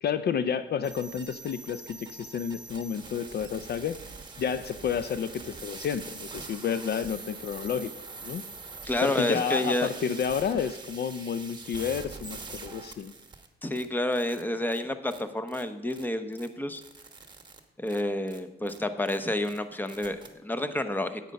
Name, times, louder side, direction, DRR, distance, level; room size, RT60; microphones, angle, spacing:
voice 1, 0.0-4.0 4.4-7.9 8.2-8.5 9.0-13.1, left 7 dB, 55° left, 12 dB, 0.5 m, -30 dB
sound 1, 0.8-13.5 13.7-13.8 14.1-14.4 14.7-14.8 15.1-15.2 15.5-15.6 15.9-16.0 16.3-16.5 16.7-17.6 17.9-18.0 18.3-18.4 18.7-18.8 19.0-19.2 19.4-19.6 19.9-20.3, right 4 dB, 20° right, 1.3 m, -44 dB
voice 2, 8.9-9.9 13.6-16.8 17.8-21.2, left 1 dB, 10° left, 10 dB, 0.8 m, -29 dB
9.1 x 8.7 x 5.3 m, 0.99 s
cardioid pair, 90°, 20 cm